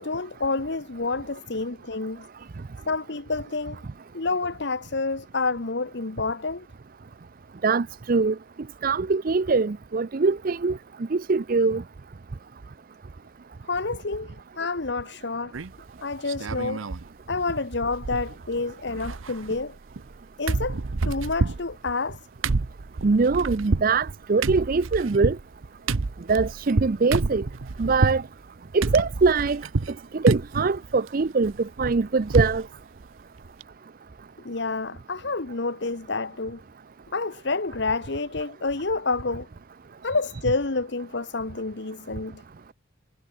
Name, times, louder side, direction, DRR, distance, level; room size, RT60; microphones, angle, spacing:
voice 1, 0.0-2.3 2.9-3.8 4.1-6.7 13.7-15.5 16.0-16.9 17.3-19.7 20.4-20.8 21.0-22.2 34.4-36.6 37.1-39.5 40.0-42.4, left 3 dB, 60° left, 1.2 m, -28 dB
voice 2, 7.6-8.4 8.8-10.8 11.1-11.8 23.0-25.4 26.3-27.5 27.8-28.2 28.7-29.6 30.1-32.6, right 4 dB, 45° right, 0.5 m, -23 dB
sound 1, 15.5-15.9 16.3-17.1 17.3-17.4 17.7-18.6 18.8-20.2 20.5-28.2 28.8-30.0 30.3-30.7 31.1-32.7 33.0-33.1 33.4-33.6, right 3 dB, 85° right, 0.8 m, -28 dB
head